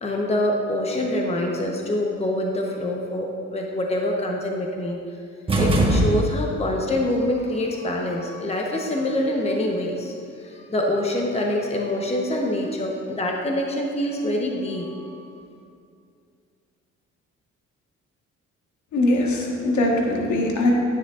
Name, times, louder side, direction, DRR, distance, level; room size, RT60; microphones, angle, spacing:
voice 1, 0.0-5.0 5.6-10.1 10.4-15.4, left 1 dB, 20° left, 0 dB, 0.9 m, -25 dB
sound 1, 5.5-6.7, right 1 dB, 20° right, 1.3 m, -21 dB
voice 2, 18.9-20.7, left 1 dB, 70° left, 0 dB, 1.4 m, -21 dB
10.5 x 9.3 x 2.5 m, 2.4 s
cardioid pair, 90°, 30 cm